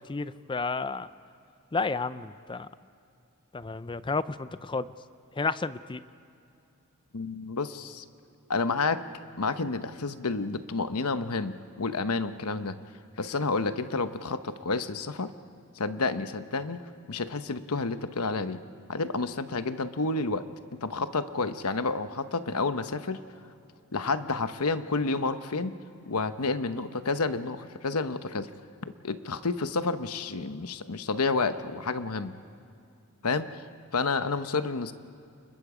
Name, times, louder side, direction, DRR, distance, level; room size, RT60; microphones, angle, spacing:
voice 1, 0.1-1.1 1.7-2.7 3.5-4.9 5.4-6.0, left 4 dB, 20° left, 15 dB, 0.5 m, -31 dB
voice 2, 7.1-8.0 8.5-9.0 9.4-12.8 13.2-15.3 15.8-16.8 17.1-18.6 18.9-20.5 20.8-23.2 23.9-25.7 26.1-28.5 29.0-32.3 33.2-33.6 33.9-34.9, left 3 dB, 80° left, 10 dB, 0.9 m, -30 dB
29.5 x 21.5 x 5.0 m, 2.6 s
head